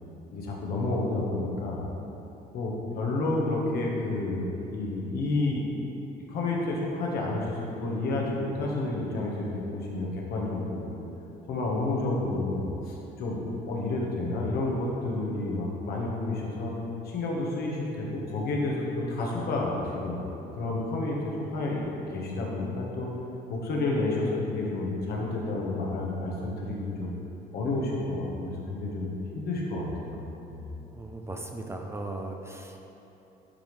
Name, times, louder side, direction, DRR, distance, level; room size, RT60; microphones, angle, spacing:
voice 1, 0.3-1.8 2.5-5.6 6.3-11.0 11.5-13.4 13.7-16.7 17.0-20.3 20.5-21.9 22.1-23.1 23.5-27.1 27.5-30.2 30.5-30.6, left 2 dB, 65° left, -3 dB, 1.2 m, -30 dB
voice 2, 30.9-32.9, right 2 dB, 15° right, 2 dB, 0.4 m, -38 dB
10.0 x 3.5 x 3.2 m, 3.0 s
cardioid pair, 110°, 17 cm